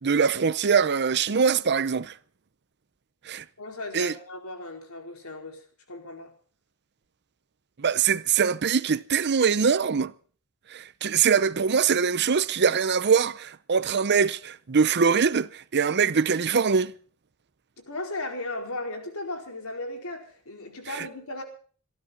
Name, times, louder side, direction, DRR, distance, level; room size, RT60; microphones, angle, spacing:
voice 1, 0.0-2.1 3.3-3.4 3.9-4.1 7.8-10.1 10.7-16.9 20.9-21.1, right 6 dB, 50° right, 0.7 m, -23 dB
voice 2, 3.6-6.3 17.9-21.4, left 2 dB, 75° left, 4.5 m, -36 dB
26.5 x 13.0 x 3.9 m
head